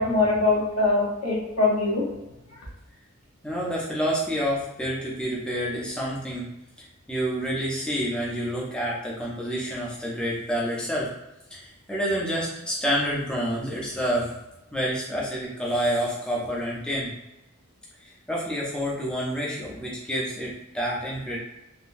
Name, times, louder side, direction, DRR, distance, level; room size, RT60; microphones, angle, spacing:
voice 1, 0.0-2.0, left 3 dB, 85° left, -4 dB, 1.0 m, -22 dB
voice 2, 3.4-6.4 7.1-11.1 11.5-14.4 14.7-17.1 18.0-21.4, equal, 5° left, -5 dB, 0.5 m, -28 dB
3.7 x 2.2 x 2.5 m, 0.90 s
head